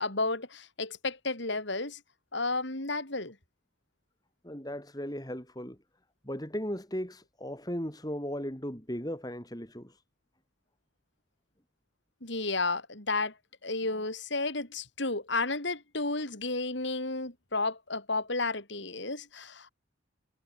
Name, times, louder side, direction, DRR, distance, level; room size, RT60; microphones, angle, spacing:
voice 1, 0.0-2.0 2.3-3.4 12.2-13.3 13.6-19.7, left 3 dB, 65° left, 4.1 m, -32 dB
voice 2, 4.4-5.8 6.2-10.0, equal, 20° left, 3.6 m, -37 dB
head